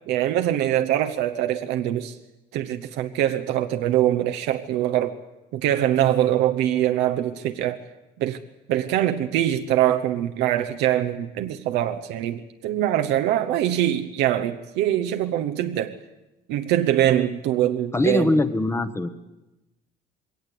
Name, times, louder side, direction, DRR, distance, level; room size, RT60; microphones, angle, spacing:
voice 1, 0.1-2.2 2.5-5.2 5.5-7.8 8.2-8.4 8.7-16.0 16.5-18.4, right 12 dB, 90° right, 0.9 m, -23 dB
voice 2, 17.9-19.1, left 2 dB, 15° left, 1.0 m, -22 dB
20.5 x 17.5 x 8.4 m
cardioid pair, 110°, 17 cm